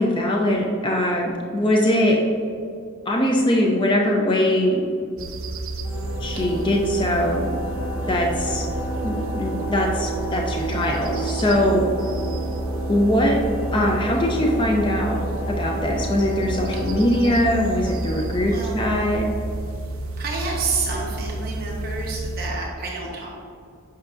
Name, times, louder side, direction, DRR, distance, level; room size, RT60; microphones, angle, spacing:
voice 1, 0.0-2.2 3.1-4.8 6.2-7.5 8.1-8.6 9.0-11.9 12.9-13.4 13.7-15.2 15.5-19.3, left 1 dB, 20° left, 0 dB, 0.5 m, -21 dB
sound 1, 5.2-22.5, right 2 dB, 65° right, 0.5 m, -30 dB
sound 2, 5.8-19.4, equal, 55° left, 1.0 m, -32 dB
voice 2, 18.4-18.8 20.2-23.3, right 4 dB, 40° right, -3 dB, 1.1 m, -29 dB
8.2 x 5.8 x 2.6 m, 2.4 s
head